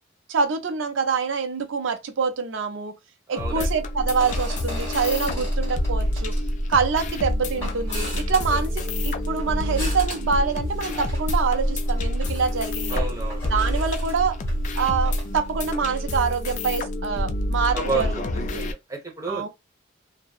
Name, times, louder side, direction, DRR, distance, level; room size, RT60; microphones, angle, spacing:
voice 1, 0.3-2.9 3.3-6.3 6.7-8.7 9.0-13.1 13.5-14.3 14.8-18.1 18.5-18.7 19.3-19.5, right 5 dB, 75° right, 0.5 m, -25 dB
voice 2, 3.3-3.7 8.5-8.6 12.9-13.5 17.7-18.1 18.3-19.5, right 3 dB, 15° right, 0.9 m, -30 dB
sound 1, 3.4-18.7, left 1 dB, 40° left, 0.3 m, -28 dB
sound 2, 4.0-15.7, equal, 15° left, 1.2 m, -30 dB
2.7 x 2.0 x 2.3 m
head